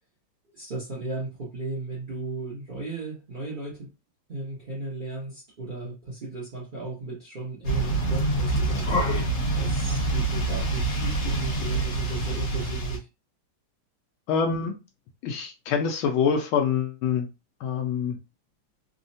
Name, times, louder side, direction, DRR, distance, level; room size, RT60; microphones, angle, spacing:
voice 1, 0.5-3.9 4.3-9.3 9.6-13.1, right 3 dB, 85° right, 0.4 m, -35 dB
sound 1, 7.6-13.0, right 2 dB, 65° left, 1.8 m, -26 dB
voice 2, 14.3-14.7 15.2-17.3 17.6-18.2, left 6 dB, 80° left, 1.4 m, -25 dB
3.7 x 2.1 x 2.6 m
omnidirectional pair, 2.2 m